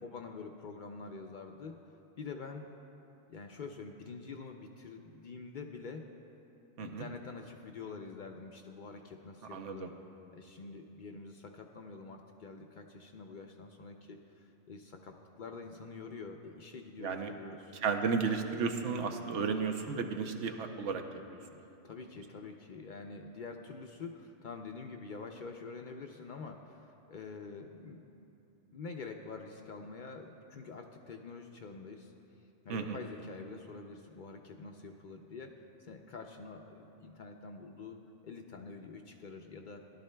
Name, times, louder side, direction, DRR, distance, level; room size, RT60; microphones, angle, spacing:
voice 1, 0.0-1.8 2.2-2.7 3.3-6.1 6.8-9.9 10.3-17.8 21.6-28.0 28.7-32.1 32.6-39.8, left 4 dB, 55° left, 4 dB, 0.5 m, -46 dB
voice 2, 9.5-9.9 17.0-17.3 17.8-21.0 21.3-21.4 32.7-33.0, right 5 dB, 80° right, 5 dB, 1.1 m, -33 dB
16.5 x 11.5 x 2.2 m, 2.8 s
omnidirectional pair, 1.2 m